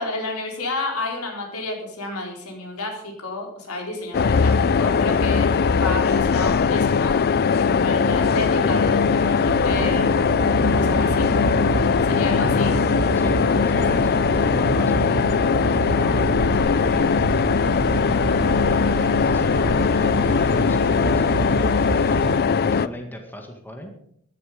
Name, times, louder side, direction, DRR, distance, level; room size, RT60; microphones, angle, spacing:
voice 1, 0.0-7.2 7.5-10.4 10.7-11.3 12.0-12.8, left 2 dB, 85° left, 1 dB, 4.1 m, -31 dB
sound 1, 4.1-22.9, left 5 dB, 45° left, 0.5 m, -20 dB
sound 2, 7.1-22.4, right 5 dB, 60° right, 0.4 m, -29 dB
Wind instrument woodwind instrument, 7.6-15.3, left 1 dB, 15° right, 6.4 m, -38 dB
voice 2, 13.1-17.4 18.6-23.9, equal, 10° left, 3 dB, 1.9 m, -37 dB
15.0 x 11.0 x 5.1 m, 0.71 s
head